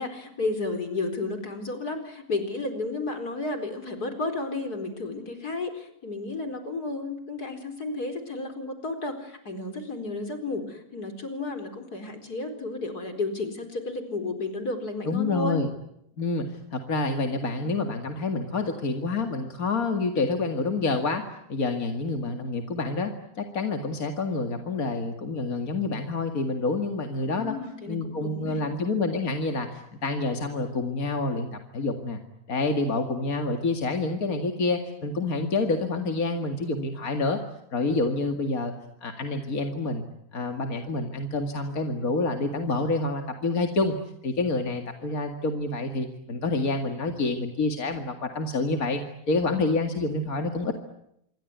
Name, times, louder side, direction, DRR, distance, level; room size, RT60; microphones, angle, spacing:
voice 1, 0.0-15.6 27.3-28.6, left 3 dB, 85° left, 8 dB, 5.0 m, -32 dB
voice 2, 15.1-15.7 16.2-21.2 21.5-27.5 27.9-32.2 32.5-37.4 37.7-38.7 39.0-40.0 40.3-44.0 44.2-49.0 49.3-50.8, left 3 dB, 65° left, 5 dB, 2.6 m, -28 dB
27.0 x 23.5 x 9.4 m, 0.77 s
omnidirectional pair, 1.6 m